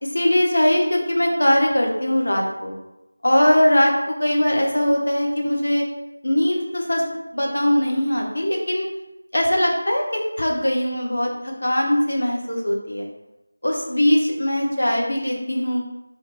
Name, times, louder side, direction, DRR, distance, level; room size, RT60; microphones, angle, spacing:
voice 1, 0.0-2.7 3.2-5.8 6.2-7.0 7.3-8.9 9.3-13.1 13.6-15.8, left 1 dB, 75° left, 0 dB, 1.0 m, -21 dB
3.0 x 2.8 x 4.5 m, 0.93 s
figure-of-eight pair, 170°, 0 cm